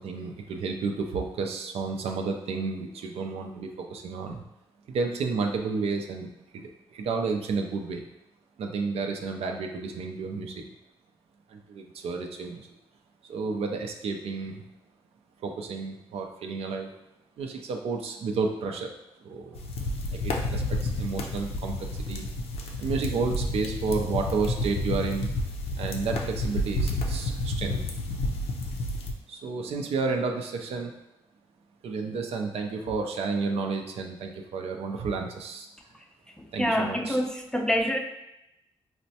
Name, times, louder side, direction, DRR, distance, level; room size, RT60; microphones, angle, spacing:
voice 1, 0.0-4.4 4.9-8.0 8.6-10.6 11.5-12.7 13.3-14.6 15.4-16.9 17.4-18.9 19.2-19.6 20.1-22.2 22.8-25.3 25.8-27.8 29.3-30.9 31.8-35.7 36.5-37.2, right 4 dB, 75° right, 3 dB, 0.4 m, -31 dB
sound 1, 19.5-29.1, left 1 dB, 80° left, 0.5 m, -30 dB
voice 2, 36.4-38.0, equal, 5° left, 2 dB, 0.4 m, -26 dB
4.3 x 2.1 x 2.7 m, 0.88 s
cardioid pair, 75°, 10 cm